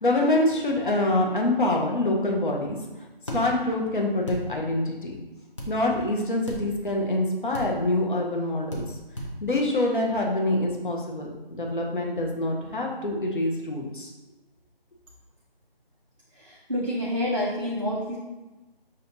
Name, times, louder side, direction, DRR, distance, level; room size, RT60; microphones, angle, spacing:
voice 1, 0.0-2.8 3.3-5.1 5.7-8.8 9.4-14.1, left 1 dB, 55° left, 0 dB, 0.9 m, -25 dB
sound 1, 3.3-3.4 4.3-4.4 5.6-5.7 6.5-6.6 7.5-7.7 8.7-8.9 9.1-9.3, equal, 30° left, 0.6 m, -33 dB
voice 2, 16.4-18.2, left 1 dB, 35° right, -5 dB, 0.4 m, -28 dB
5.9 x 2.5 x 2.7 m, 1.1 s
figure-of-eight pair, 160°, 30 cm